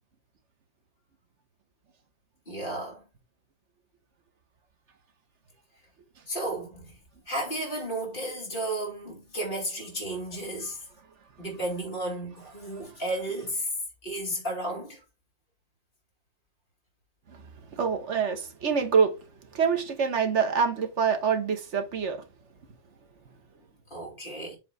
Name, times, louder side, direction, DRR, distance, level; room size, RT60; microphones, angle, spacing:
voice 1, 2.5-3.0 6.3-6.9 7.3-10.8 11.4-13.7 14.0-15.0 23.9-24.6, right 1 dB, 50° left, 2.9 m, -33 dB
voice 2, 17.7-19.1 19.5-22.2, right 6 dB, 85° right, 1.4 m, -25 dB
7.4 x 3.1 x 5.2 m
omnidirectional pair, 1.2 m